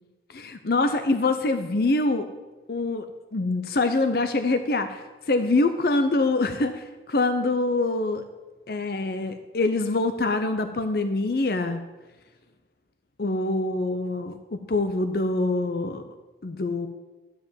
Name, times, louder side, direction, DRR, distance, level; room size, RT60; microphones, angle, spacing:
voice 1, 0.3-2.3 2.7-3.0 3.3-8.2 8.7-11.8 13.2-16.1 16.4-16.9, left 2 dB, 55° left, 9 dB, 0.6 m, -25 dB
12.5 x 5.1 x 8.6 m, 1.2 s
head